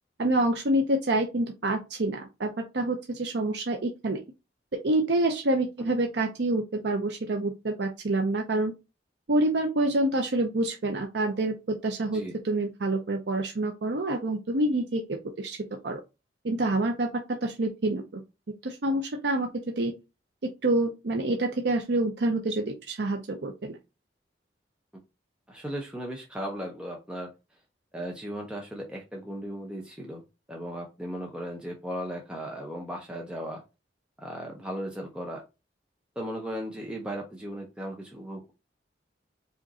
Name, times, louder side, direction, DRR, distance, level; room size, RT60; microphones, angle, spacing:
voice 1, 0.2-4.2 4.7-8.7 9.3-15.6 15.8-16.0 16.4-17.1 17.4-18.2 18.6-19.5 19.8-19.9 20.6-23.8, right 2 dB, 70° right, 3 dB, 0.6 m, -27 dB
voice 2, 25.5-27.3 27.9-30.2 30.5-33.6 34.2-35.4 36.2-38.5, equal, 5° right, 0 dB, 0.7 m, -36 dB
5.0 x 2.6 x 4.0 m, 0.26 s
head